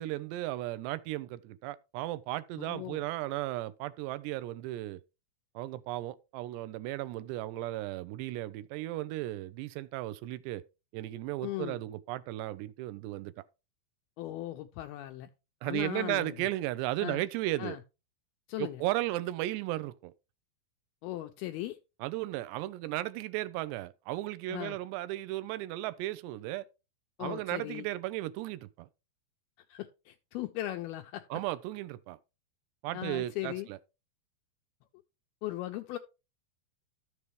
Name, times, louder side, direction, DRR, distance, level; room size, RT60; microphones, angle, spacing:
voice 1, 0.0-5.0 5.6-10.6 10.9-13.3 15.6-17.8 18.6-20.1 22.0-26.7 27.2-28.9 31.3-32.2 32.8-33.8, right 16 dB, 90° right, 2.8 m, -35 dB
voice 2, 2.6-3.0 11.4-11.8 14.2-15.3 15.6-16.5 17.0-17.2 17.6-17.8 18.5-18.8 21.0-21.8 24.5-24.8 27.2-27.9 29.7-31.4 32.9-33.7 35.4-36.0, left 15 dB, 80° left, 2.3 m, -38 dB
13.0 x 7.0 x 3.2 m
omnidirectional pair, 4.8 m